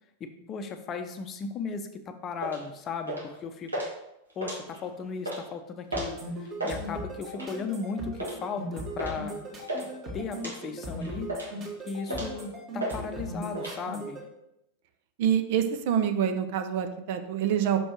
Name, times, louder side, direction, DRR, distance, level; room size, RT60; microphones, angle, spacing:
voice 1, 0.2-3.7 4.4-9.5 10.1-11.4 11.9-14.2, left 5 dB, 30° left, 7 dB, 0.7 m, -36 dB
sound 1, 2.4-2.6 3.1-3.4 3.7-3.9 4.3-4.9 5.2-5.4 5.9-6.2 6.5-6.8 7.3-7.6 8.2-8.4 9.0-9.2 9.4-9.9 10.4-10.6 11.0-11.6 12.1-12.4 12.8-13.0 13.2-13.8, right 1 dB, 80° right, 1.6 m, -34 dB
sound 2, 5.9-14.2, equal, 30° right, 1.9 m, -38 dB
voice 2, 15.2-17.8, right 9 dB, 50° right, 7 dB, 0.6 m, -26 dB
6.1 x 4.4 x 4.5 m, 0.83 s
figure-of-eight pair, 90°, 0 cm